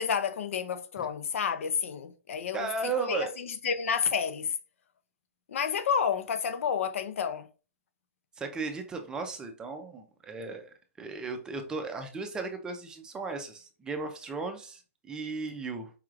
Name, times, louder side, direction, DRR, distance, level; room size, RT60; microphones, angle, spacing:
voice 1, 0.0-2.7 3.0-4.5 5.5-7.4, left 7 dB, 70° left, 0.7 m, -30 dB
voice 2, 2.5-3.3 8.4-10.7 11.0-15.9, right 4 dB, 10° right, 0.5 m, -35 dB
4.8 x 3.1 x 2.4 m
hypercardioid pair, 155°, 7 cm